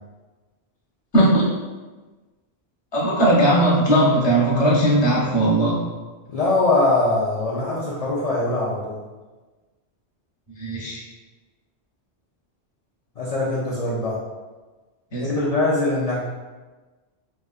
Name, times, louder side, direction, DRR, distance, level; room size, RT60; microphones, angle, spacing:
voice 1, 1.1-1.5 2.9-5.8 10.6-11.0 15.1-15.3, right 1 dB, 25° left, -6 dB, 0.8 m, -18 dB
voice 2, 6.3-9.0 13.2-14.2 15.2-16.3, left 2 dB, 60° left, -7 dB, 0.4 m, -22 dB
3.3 x 2.4 x 2.4 m, 1.2 s
omnidirectional pair, 1.1 m